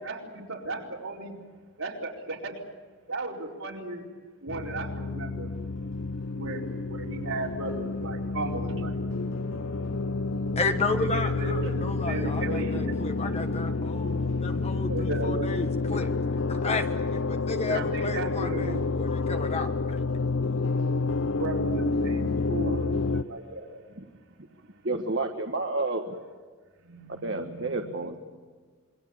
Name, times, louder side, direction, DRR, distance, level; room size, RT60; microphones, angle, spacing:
voice 1, 0.0-1.3 1.8-2.6 3.1-4.1 4.4-5.5 6.4-9.6 11.1-12.9 14.9-15.3 17.7-18.8 21.4-23.7 26.8-28.1, right 2 dB, 80° right, -2 dB, 4.4 m, -35 dB
Gong rumble, 4.5-23.2, left 3 dB, 65° left, 0.6 m, -29 dB
sound 1, 8.9-14.8, right 5 dB, ahead, 5.2 m, -48 dB
voice 2, 10.6-16.1 16.5-16.8 17.1-20.0, left 3 dB, 30° left, 7 dB, 1.3 m, -33 dB
voice 3, 24.8-26.2 27.2-28.2, right 2 dB, 55° right, 3 dB, 1.4 m, -30 dB
27.0 x 22.5 x 7.3 m, 1.5 s
head